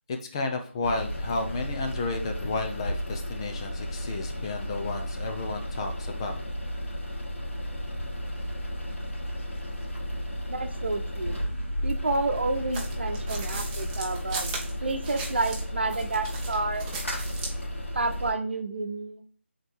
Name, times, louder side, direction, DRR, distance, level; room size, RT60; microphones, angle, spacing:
voice 1, 0.1-6.4, left 3 dB, 25° left, 4 dB, 0.8 m, -32 dB
sound 1, 0.8-18.3, equal, 75° left, 2.4 m, -33 dB
voice 2, 10.5-11.4 11.8-14.5 14.8-16.9 17.9-19.2, right 3 dB, 60° right, 7 dB, 0.9 m, -30 dB
sound 2, 12.7-15.6 15.9-17.6, right 3 dB, 15° right, 0.8 m, -37 dB
5.3 x 4.1 x 4.7 m, 0.41 s
figure-of-eight pair, 155°, 7 cm